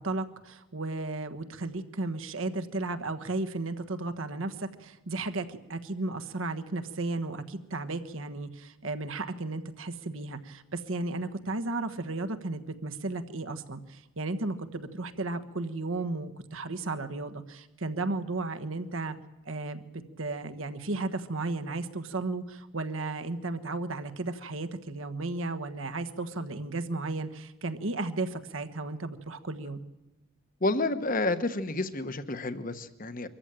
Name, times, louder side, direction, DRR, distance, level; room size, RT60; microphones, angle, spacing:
voice 1, 0.0-19.2 19.4-29.8, right 2 dB, 75° right, 9 dB, 1.4 m, -34 dB
voice 2, 30.6-33.3, left 2 dB, 40° left, 11 dB, 1.1 m, -30 dB
24.0 x 14.5 x 9.0 m, 1.0 s
head